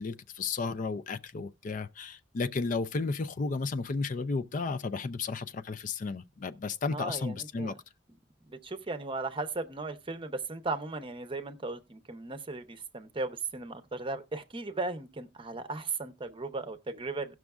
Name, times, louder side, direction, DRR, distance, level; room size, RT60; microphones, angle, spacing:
voice 1, 0.0-7.7, left 4 dB, 45° left, 0.4 m, -33 dB
voice 2, 6.9-7.8 8.5-17.4, right 3 dB, 30° right, 0.7 m, -36 dB
17.5 x 6.1 x 2.3 m
head